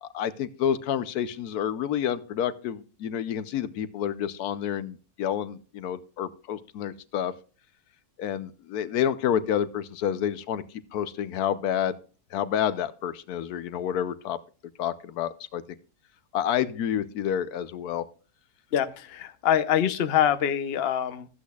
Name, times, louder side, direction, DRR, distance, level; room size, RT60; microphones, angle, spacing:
voice 1, 0.0-7.3 8.2-10.6 10.9-12.0 12.3-14.4 14.8-15.6 16.3-18.1, left 9 dB, 80° left, 14 dB, 1.2 m, -29 dB
voice 2, 18.7-21.3, left 9 dB, 50° left, 10 dB, 0.9 m, -24 dB
14.5 x 8.2 x 2.3 m, 0.36 s
omnidirectional pair, 1.6 m